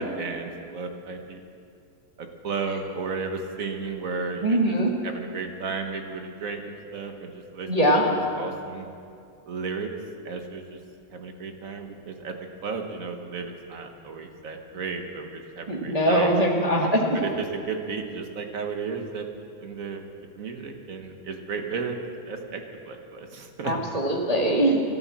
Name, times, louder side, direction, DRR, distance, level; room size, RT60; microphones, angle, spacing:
voice 1, 0.0-1.4 2.2-4.8 5.0-8.9 9.5-9.9 10.2-10.8 11.1-12.3 12.6-16.4 17.1-19.3 19.6-20.0 20.3-22.0 22.3-23.7, right 4 dB, 45° right, 4 dB, 1.4 m, -34 dB
voice 2, 4.4-4.9 7.7-8.0 15.7-17.2 23.6-24.8, right 1 dB, 20° right, -2 dB, 1.1 m, -22 dB
14.0 x 12.5 x 7.4 m, 2.5 s
omnidirectional pair, 2.4 m